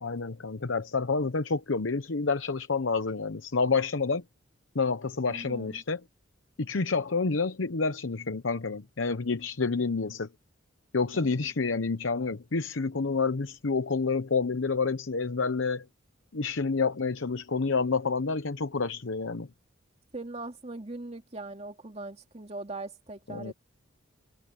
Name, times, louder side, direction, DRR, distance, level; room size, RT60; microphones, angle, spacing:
voice 1, 0.0-4.2 4.7-6.0 6.6-10.3 10.9-15.9 16.3-19.5 23.3-23.5, left 4 dB, 75° left, 0.9 m, -28 dB
voice 2, 5.3-5.8 11.1-11.4 20.1-23.5, right 2 dB, 35° right, 2.6 m, -40 dB
head